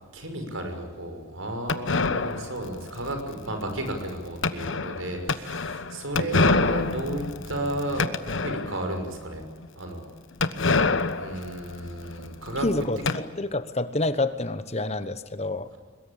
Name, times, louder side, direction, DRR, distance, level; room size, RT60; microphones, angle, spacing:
voice 1, 0.1-8.1 8.4-9.4 9.8-10.1 11.1-12.7, right 1 dB, 85° right, 5 dB, 5.9 m, -33 dB
sound 1, 1.7-9.0 9.4-9.5 9.6-9.7 10.4-13.2, left 3 dB, 70° left, 1.2 m, -27 dB
voice 2, 12.6-15.7, left 2 dB, 30° left, 13 dB, 1.1 m, -28 dB
23.0 x 21.5 x 8.8 m, 1.5 s
head